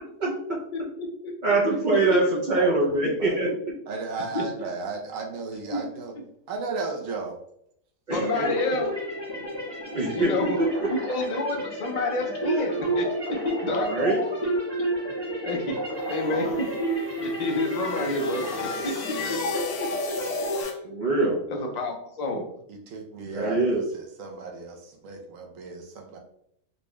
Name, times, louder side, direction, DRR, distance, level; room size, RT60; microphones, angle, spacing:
voice 1, 0.7-1.3 2.1-2.2 3.5-3.6 4.3-4.4 8.1-8.9 9.4-9.5 10.1-10.6 10.9-13.9 14.4-14.5 15.4-15.8 16.0-16.7 17.2-19.0 19.3-20.9 21.5-22.5, left 2 dB, 50° left, 2 dB, 0.5 m, -30 dB
voice 2, 1.4-3.5 8.1-8.5 9.9-10.3 10.6-10.9 13.9-14.2 20.8-21.4 23.3-23.8, right 2 dB, 50° right, -4 dB, 0.6 m, -23 dB
voice 3, 2.5-3.4 3.9-6.1 6.5-7.4 22.7-26.2, right 4 dB, 75° right, 2 dB, 1.1 m, -35 dB
sound 1, 8.1-20.6, right 1 dB, 20° right, 0.8 m, -30 dB
sound 2, 16.0-20.7, left 6 dB, 85° left, 1.0 m, -37 dB
4.0 x 2.3 x 3.0 m, 0.71 s
omnidirectional pair, 1.4 m